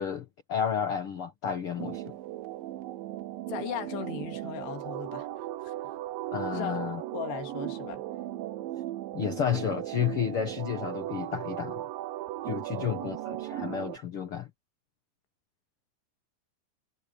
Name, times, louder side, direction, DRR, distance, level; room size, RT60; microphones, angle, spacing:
voice 1, 0.0-2.1 6.3-7.0 9.1-11.8 12.4-14.5, left 8 dB, 65° left, 1.3 m, -31 dB
sound 1, 1.8-14.0, right 14 dB, 75° right, 2.2 m, -37 dB
voice 2, 3.5-5.7 6.5-8.0 12.7-13.2, left 10 dB, 80° left, 3.9 m, -39 dB
omnidirectional pair, 4.8 m